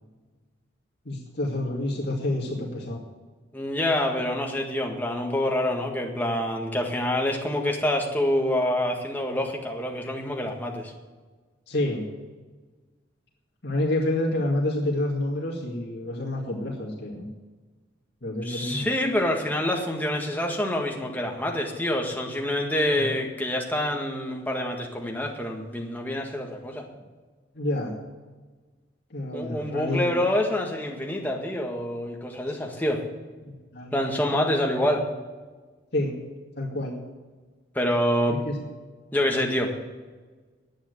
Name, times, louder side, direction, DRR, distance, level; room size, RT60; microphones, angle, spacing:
voice 1, 1.1-3.0 11.7-12.0 13.6-17.3 18.2-18.9 23.0-23.1 27.5-27.9 29.1-30.1 33.4-33.9 35.9-36.2 36.5-37.0 38.3-38.6, left 1 dB, 60° left, -3 dB, 2.2 m, -28 dB
voice 2, 3.5-10.9 18.4-26.8 29.3-33.0 33.9-35.0 37.7-38.4 39.1-39.7, left 1 dB, 10° left, 0 dB, 1.7 m, -26 dB
10.5 x 8.8 x 8.1 m, 1.3 s
head